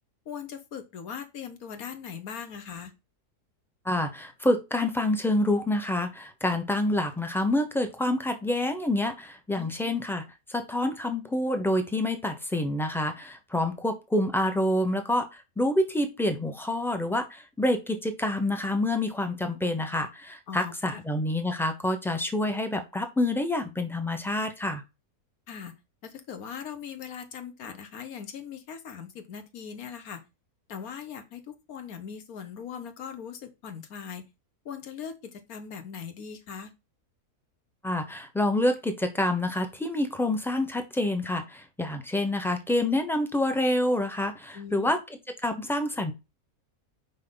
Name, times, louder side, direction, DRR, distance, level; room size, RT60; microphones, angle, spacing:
voice 1, 0.2-2.9 9.6-10.0 20.5-21.0 25.5-25.7 26.0-30.2 30.7-34.3 34.6-36.7 44.5-44.9, left 7 dB, 65° left, 8 dB, 1.5 m, -40 dB
voice 2, 3.8-10.2 10.5-24.8 37.8-45.0 45.4-46.1, left 1 dB, ahead, 6 dB, 0.7 m, -27 dB
5.5 x 5.4 x 4.0 m, 0.25 s
omnidirectional pair, 1.7 m